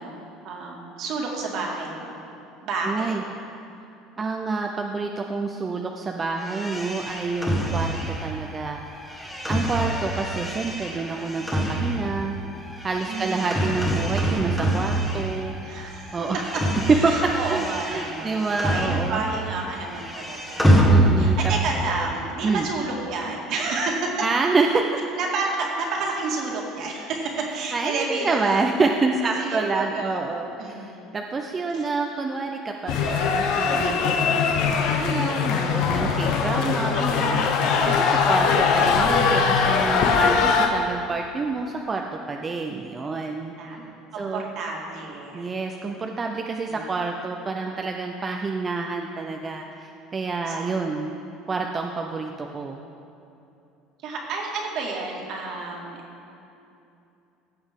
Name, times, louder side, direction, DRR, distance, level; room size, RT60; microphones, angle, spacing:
voice 1, 0.0-2.2 2.6-3.1 9.6-9.7 13.1-13.5 15.6-16.2 16.9-24.0 25.2-28.7 29.2-31.0 31.7-31.8 36.3-36.6 43.6-43.9 44.1-45.4 46.7-46.9 50.5-50.7 54.0-56.0, right 3 dB, 55° right, -1 dB, 1.9 m, -31 dB
voice 2, 2.8-3.2 4.2-8.9 9.5-12.4 12.8-15.5 16.1-16.5 17.0-17.1 17.5-19.2 20.9-21.4 22.4-22.7 24.2-24.9 27.7-37.5 37.9-43.5 44.2-44.5 45.3-51.1 51.5-52.8, right 4 dB, 25° right, 2 dB, 0.5 m, -28 dB
sound 1, 6.4-15.7 16.0-19.4 19.7-21.6, right 1 dB, 5° left, 1.5 m, -25 dB
sound 2, 32.9-40.7, left 5 dB, 65° left, 1.0 m, -21 dB
16.0 x 7.0 x 3.6 m, 2.8 s
cardioid pair, 125°, 0 cm